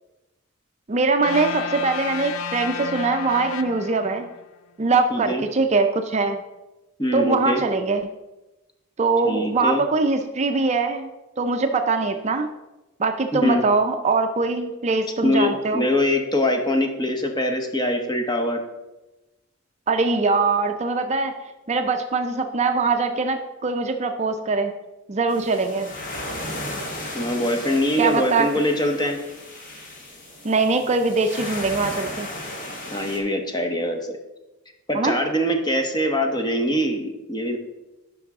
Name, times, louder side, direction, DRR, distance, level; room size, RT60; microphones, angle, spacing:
voice 1, 0.9-4.3 4.8-6.4 7.1-8.0 9.0-11.1 11.4-12.5 13.0-15.9 19.9-21.4 21.7-24.7 25.1-25.9 28.0-28.5 30.4-32.3 34.9-35.1, right 3 dB, 35° right, 6 dB, 0.5 m, -22 dB
sound 1, 1.2-4.5, left 7 dB, 90° left, 0.5 m, -31 dB
voice 2, 5.1-5.4 7.0-7.6 9.3-9.8 13.4-13.6 15.2-18.6 27.1-29.2 32.9-34.0 34.9-37.6, left 1 dB, 20° left, 4 dB, 0.9 m, -23 dB
sound 2, 25.3-33.2, left 1 dB, 40° left, 1.3 m, -35 dB
10.5 x 5.5 x 3.6 m, 1.0 s
head